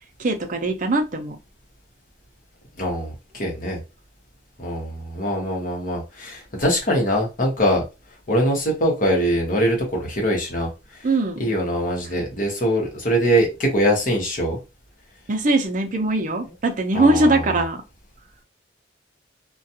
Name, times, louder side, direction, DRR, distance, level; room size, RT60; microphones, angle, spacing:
voice 1, 0.2-1.4 11.0-11.5 15.3-17.8, right 2 dB, 45° right, 0.5 m, -21 dB
voice 2, 2.8-3.8 4.6-7.8 8.3-11.1 11.4-14.6 16.9-17.5, equal, 45° left, 1.0 m, -23 dB
2.4 x 2.2 x 2.7 m
head